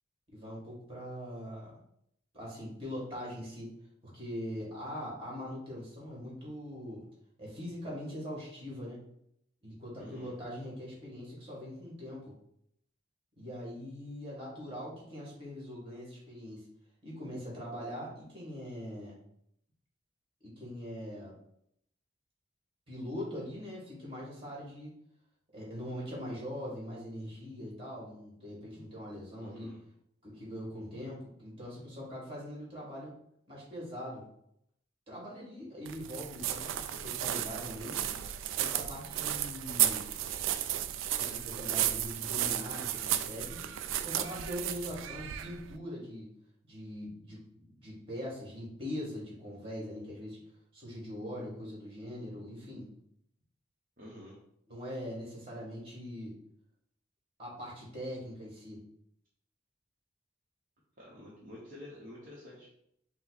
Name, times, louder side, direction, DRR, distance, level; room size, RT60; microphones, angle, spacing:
voice 1, 0.3-1.7 2.3-3.7 4.0-7.0 7.4-9.0 9.6-12.3 13.4-16.7 17.0-19.2 20.4-21.3 22.9-24.9 25.5-29.7 30.2-33.1 33.5-34.2 35.1-38.1 38.5-40.1 41.2-43.7 44.0-46.3 46.7-47.4 47.8-50.4 50.7-52.9 54.7-56.3 57.4-58.8, equal, 30° right, -4 dB, 1.7 m, -42 dB
voice 2, 10.0-10.3 29.4-29.8 54.0-54.4 61.0-62.7, left 1 dB, 45° right, -6 dB, 0.9 m, -49 dB
sound 1, 35.9-45.7, right 11 dB, 85° right, 0.3 m, -33 dB
5.5 x 2.1 x 4.0 m, 0.74 s
head